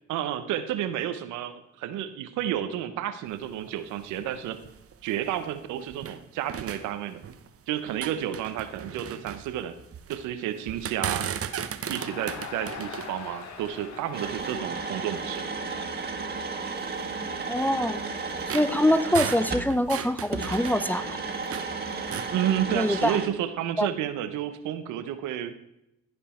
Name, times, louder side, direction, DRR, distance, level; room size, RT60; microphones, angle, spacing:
voice 1, 0.1-4.6 5.0-7.2 7.7-9.8 10.1-11.3 11.9-15.4 22.3-25.5, right 11 dB, 80° right, 11 dB, 0.9 m, -31 dB
sound 1, 3.2-6.2 6.5-7.6 7.9-10.2 10.7-14.7 15.3-15.4 15.9-16.0 16.8-21.7 22.0-22.4, right 8 dB, 50° right, 0.9 m, -37 dB
Crowd, 11.8-17.0, left 7 dB, 65° left, 1.3 m, -43 dB
sound 2, 14.1-19.7 20.3-23.3, right 4 dB, 30° right, 2.0 m, -33 dB
voice 2, 17.5-18.0 18.5-21.2 22.7-23.2 23.8-23.9, left 1 dB, 5° left, 12 dB, 0.5 m, -24 dB
15.0 x 5.2 x 4.4 m, 0.82 s
hypercardioid pair, 50°, 30 cm